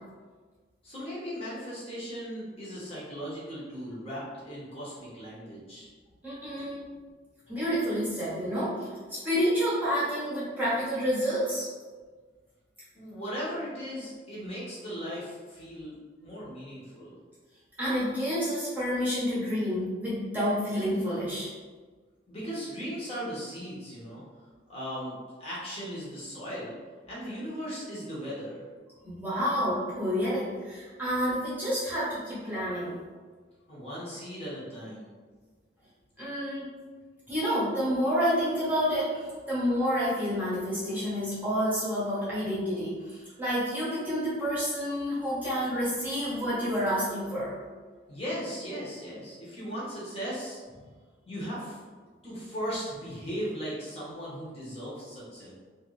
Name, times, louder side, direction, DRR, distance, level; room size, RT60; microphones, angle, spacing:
voice 1, 0.8-5.9 6.6-6.8 12.9-17.2 22.3-24.2 24.7-26.8 27.1-28.7 33.7-35.1 48.1-50.6 51.3-51.8 52.2-55.5, equal, 30° left, -8 dB, 0.9 m, -37 dB
voice 2, 6.2-6.9 7.5-11.7 17.8-21.5 29.0-32.9 36.2-36.6 37.3-47.7, equal, 10° right, -10 dB, 0.9 m, -29 dB
3.0 x 2.5 x 3.1 m, 1.5 s
head